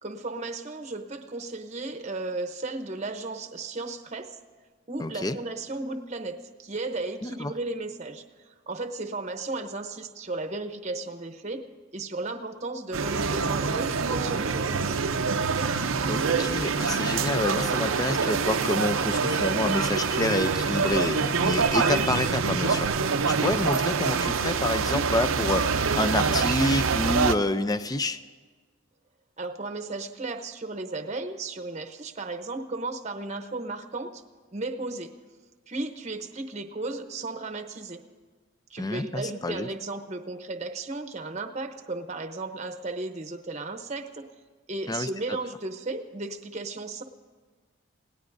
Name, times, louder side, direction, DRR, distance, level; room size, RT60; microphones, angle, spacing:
voice 1, 0.0-4.4 4.9-11.6 11.9-15.0 29.4-34.2 34.5-35.1 35.7-38.0 38.7-44.2 44.7-47.0, right 2 dB, 35° right, 6 dB, 0.8 m, -35 dB
voice 2, 5.0-5.4 7.2-7.5 16.1-22.9 23.3-28.2 38.8-39.7 44.9-45.1, left 2 dB, 20° left, 11 dB, 0.5 m, -28 dB
sound 1, 12.9-27.4, right 5 dB, 90° right, 0.7 m, -25 dB
27.5 x 17.5 x 2.6 m, 1.5 s
head